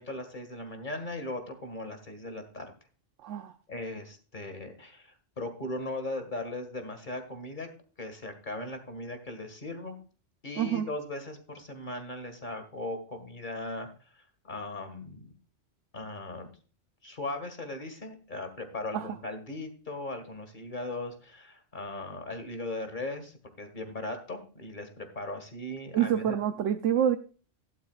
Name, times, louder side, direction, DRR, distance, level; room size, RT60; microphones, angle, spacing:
voice 1, 0.0-2.7 3.7-7.7 8.0-10.0 10.4-13.9 14.4-15.3 15.9-16.5 17.0-26.4, left 2 dB, 40° left, 7 dB, 1.9 m, -38 dB
voice 2, 3.2-3.5 10.6-10.9 18.9-19.2 25.9-27.2, right 9 dB, 85° right, 8 dB, 1.0 m, -27 dB
12.5 x 11.0 x 2.4 m, 0.37 s
omnidirectional pair, 1.2 m